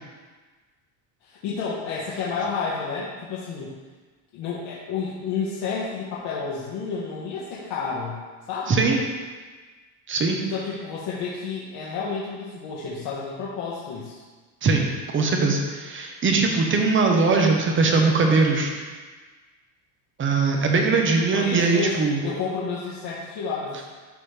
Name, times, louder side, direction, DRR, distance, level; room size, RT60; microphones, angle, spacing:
voice 1, 1.2-3.7 4.3-8.2 8.5-8.9 10.5-14.2 21.3-23.8, left 5 dB, 60° left, -6 dB, 1.5 m, -30 dB
voice 2, 8.7-9.0 10.1-10.4 14.6-14.9 15.1-18.7 20.2-22.2, right 4 dB, 25° right, 2 dB, 1.1 m, -21 dB
12.0 x 4.0 x 3.4 m, 1.4 s
cardioid pair, 135°, 47 cm